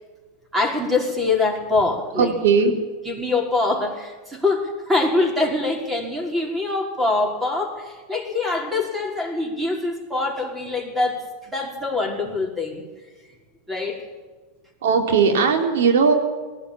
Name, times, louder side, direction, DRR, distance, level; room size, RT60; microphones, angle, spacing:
voice 1, 0.5-2.3 3.1-12.8 13.7-14.0, left 3 dB, 10° right, 2 dB, 5.3 m, -24 dB
voice 2, 2.1-2.7 14.8-16.1, right 5 dB, 75° right, 4 dB, 3.6 m, -18 dB
19.5 x 15.5 x 8.8 m, 1.4 s
hypercardioid pair, 115°, 0 cm